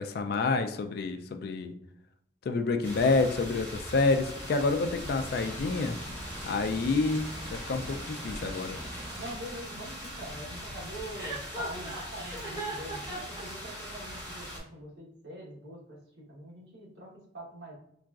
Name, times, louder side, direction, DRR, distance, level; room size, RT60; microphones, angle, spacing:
voice 1, 0.0-1.7 2.5-6.0 6.4-7.2 7.5-8.8, left 3 dB, 55° left, 7 dB, 0.3 m, -28 dB
sound 1, 2.8-14.6, equal, 10° left, 1.2 m, -41 dB
sound 2, 5.0-9.4, right 1 dB, 30° right, 0.8 m, -44 dB
voice 2, 9.2-17.7, right 1 dB, 65° right, -3 dB, 1.1 m, -44 dB
Chuckle chortle, 11.1-13.4, right 1 dB, 15° right, 1.1 m, -38 dB
3.8 x 2.4 x 2.3 m, 0.71 s
head